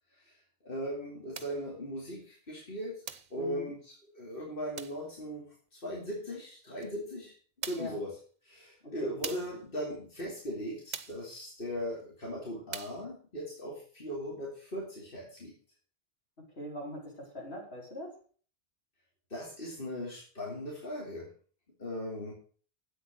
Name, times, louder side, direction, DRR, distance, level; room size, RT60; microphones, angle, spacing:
voice 1, 0.6-3.0 3.3-7.3 7.7-8.2 8.4-15.5 19.3-21.3 21.8-22.3, equal, 60° left, -3 dB, 3.3 m, -38 dB
sound 1, 1.3-1.6 3.1-3.4 4.8-5.0 6.8-6.9 7.6-8.0 9.2-9.6 10.9-11.3 12.7-13.0, right 6 dB, 45° right, 0.9 m, -41 dB
voice 2, 3.4-3.7 7.8-8.0 8.8-9.1 16.6-18.2, left 1 dB, 75° left, -2 dB, 4.5 m, -42 dB
10.5 x 8.3 x 6.4 m, 0.43 s
omnidirectional pair, 1.0 m